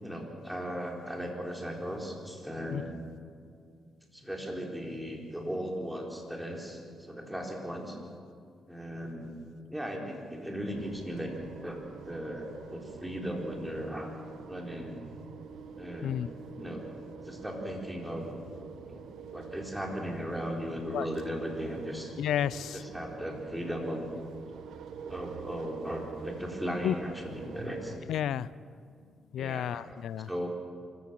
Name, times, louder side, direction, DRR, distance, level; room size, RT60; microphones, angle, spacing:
voice 1, 0.0-2.9 4.1-8.0 8.7-9.3 9.7-11.3 11.6-14.1 14.5-15.0 15.8-16.2 16.5-16.9 17.2-18.3 18.9-19.0 19.3-22.1 22.7-24.0 25.1-27.9 29.4-29.8 30.3-30.5, equal, 5° right, 0 dB, 4.4 m, -37 dB
sound 1, 10.7-28.0, right 6 dB, 80° right, 1.3 m, -46 dB
voice 2, 22.2-22.8 26.8-27.0 28.1-28.5 29.3-30.3, left 10 dB, 80° left, 19 dB, 0.5 m, -31 dB
25.5 x 15.0 x 7.7 m, 2.3 s
cardioid pair, 80°, 0 cm